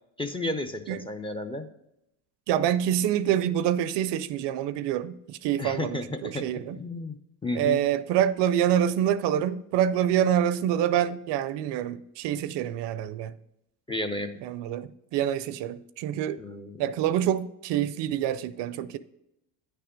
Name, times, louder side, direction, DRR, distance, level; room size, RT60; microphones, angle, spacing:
voice 1, 0.2-1.7 5.6-6.5 6.8-7.8 13.9-14.3 16.4-16.8, left 2 dB, 10° left, 0.5 m, -32 dB
voice 2, 2.5-6.8 7.5-13.3 14.4-16.4 16.8-19.0, right 10 dB, 65° right, 0.5 m, -26 dB
9.4 x 3.4 x 5.0 m
supercardioid pair, 90°, 45 cm